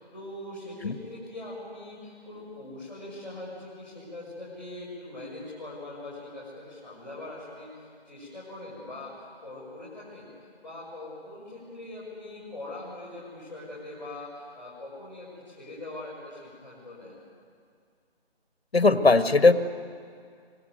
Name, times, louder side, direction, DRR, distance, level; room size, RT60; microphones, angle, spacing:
voice 1, 0.0-10.3 10.6-17.2, left 2 dB, 5° left, -17 dB, 5.0 m, -42 dB
voice 2, 18.7-19.5, left 3 dB, 70° left, 10 dB, 1.7 m, -18 dB
25.0 x 21.5 x 9.4 m, 2.2 s
figure-of-eight pair, 170°, 32 cm